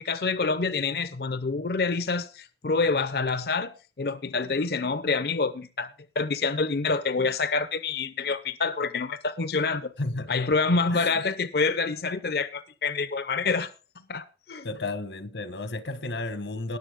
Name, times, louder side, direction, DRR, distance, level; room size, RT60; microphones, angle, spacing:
voice 1, 0.0-3.7 4.0-9.9 10.3-13.7 14.0-14.7, left 4 dB, 55° left, 0.6 m, -27 dB
voice 2, 10.0-10.3 10.9-11.1 14.6-16.8, left 2 dB, 85° left, 1.3 m, -32 dB
19.5 x 7.1 x 3.6 m
head